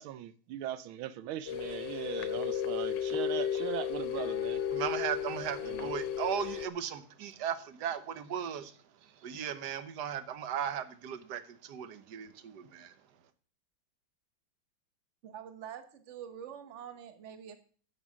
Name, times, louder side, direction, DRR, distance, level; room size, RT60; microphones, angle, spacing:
voice 1, 0.0-4.6 5.6-5.9, right 12 dB, 85° right, 1.5 m, -39 dB
sound 1, 1.5-6.7, left 9 dB, 70° left, 1.3 m, -34 dB
voice 2, 4.7-12.9, right 9 dB, 60° right, 1.3 m, -37 dB
voice 3, 15.2-17.6, right 9 dB, 45° right, 1.2 m, -45 dB
9.5 x 7.7 x 6.2 m
omnidirectional pair, 2.2 m